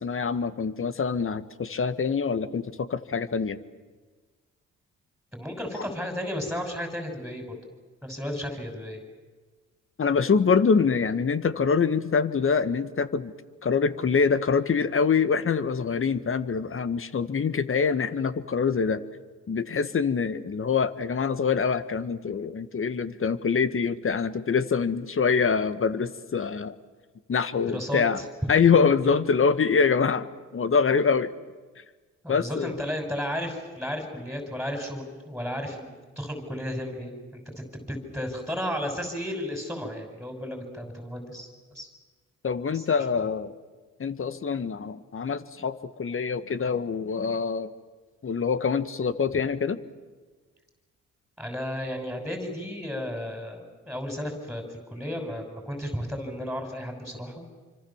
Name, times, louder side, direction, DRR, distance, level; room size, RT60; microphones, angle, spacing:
voice 1, 0.0-3.6 5.8-5.9 10.0-13.3 13.6-19.0 19.5-26.7 27.3-28.2 28.5-31.3 32.3-32.8 42.4-43.5 44.0-47.7 48.2-49.8, left 5 dB, 40° left, 13 dB, 1.7 m, -25 dB
voice 2, 5.3-7.6 8.0-9.0 27.7-28.5 32.2-37.4 37.7-41.9 42.7-42.9 49.3-49.4 51.4-57.5, equal, ahead, 4 dB, 6.3 m, -33 dB
27.0 x 25.0 x 7.4 m, 1.4 s
supercardioid pair, 60°, 31 cm